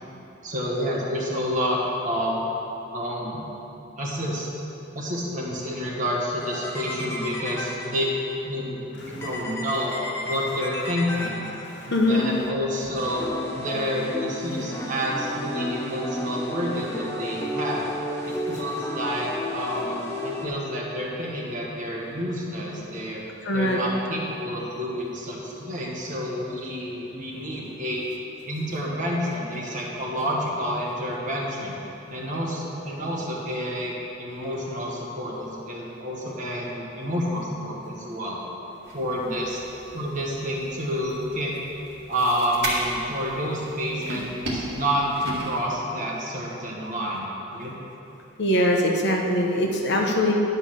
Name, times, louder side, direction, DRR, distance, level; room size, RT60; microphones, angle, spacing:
voice 1, 0.4-2.4 2.9-3.4 4.0-4.5 4.9-8.1 8.4-9.9 10.2-11.4 11.9-13.3 13.5-17.9 18.2-23.2 23.5-28.0 28.4-31.8 32.1-38.4 38.9-39.6 39.9-41.6 42.1-47.8, equal, 40° right, -4 dB, 1.6 m, -29 dB
sound 1, 6.4-8.3 9.2-12.0 13.0-20.5, left 1 dB, 15° left, 1.1 m, -33 dB
voice 2, 11.7-12.2 23.4-23.8 48.4-50.3, left 1 dB, 55° left, 1 dB, 1.0 m, -22 dB
sound 2, 38.8-45.7, right 1 dB, 55° right, 2.1 m, -36 dB
10.5 x 5.4 x 6.5 m, 2.9 s
head